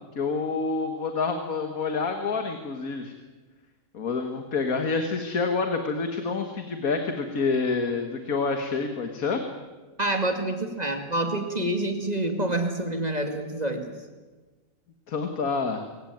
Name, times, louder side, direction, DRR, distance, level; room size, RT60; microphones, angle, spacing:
voice 1, 0.1-3.1 3.9-9.4 15.1-15.8, left 4 dB, 80° left, 5 dB, 2.1 m, -27 dB
voice 2, 10.0-13.9, right 1 dB, 30° right, 5 dB, 2.4 m, -27 dB
25.5 x 16.5 x 9.3 m, 1.3 s
omnidirectional pair, 1.5 m